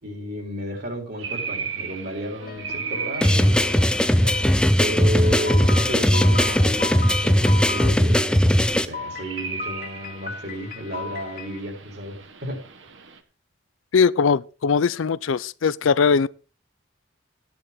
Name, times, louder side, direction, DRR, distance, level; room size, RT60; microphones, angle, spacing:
voice 1, 0.0-3.6 4.8-12.6, equal, 50° right, 3.6 m, -32 dB
sound 1, 1.2-13.2, right 6 dB, 75° right, 1.4 m, -38 dB
sound 2, 2.4-4.7 5.2-7.9 8.9-11.6, left 4 dB, 45° left, 0.9 m, -36 dB
sound 3, 3.2-8.8, equal, 5° left, 0.5 m, -19 dB
voice 2, 13.9-16.3, left 5 dB, 80° left, 0.5 m, -20 dB
12.0 x 10.5 x 3.6 m
head